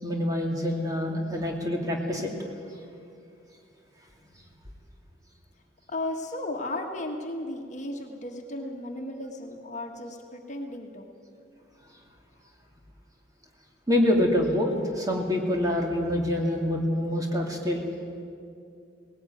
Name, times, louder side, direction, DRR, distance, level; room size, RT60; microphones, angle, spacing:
voice 1, 0.0-2.3 13.9-17.8, left 1 dB, 20° right, 0 dB, 2.4 m, -26 dB
voice 2, 5.9-11.1, left 1 dB, 40° left, 2 dB, 1.6 m, -35 dB
19.0 x 17.0 x 9.3 m, 2.5 s
head